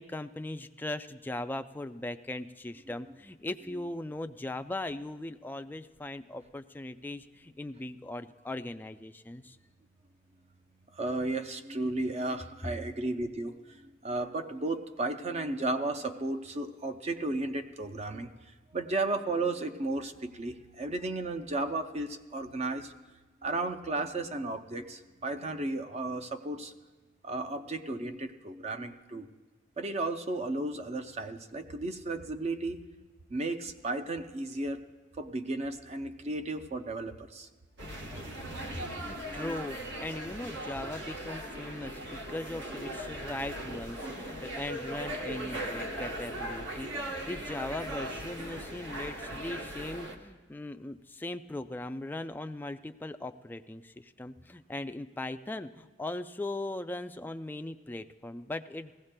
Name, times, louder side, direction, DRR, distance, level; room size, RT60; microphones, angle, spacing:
voice 1, 0.0-9.6 39.0-58.9, left 2 dB, 10° left, 9 dB, 0.3 m, -39 dB
voice 2, 10.9-18.3 18.7-22.9 23.4-26.7 27.2-29.3 29.8-32.8 33.3-34.8 35.2-37.5, right 2 dB, 35° right, 7 dB, 0.6 m, -34 dB
sound 1, 37.8-50.1, right 1 dB, 65° right, 1.1 m, -39 dB
18.5 x 15.5 x 2.2 m, 1.2 s
head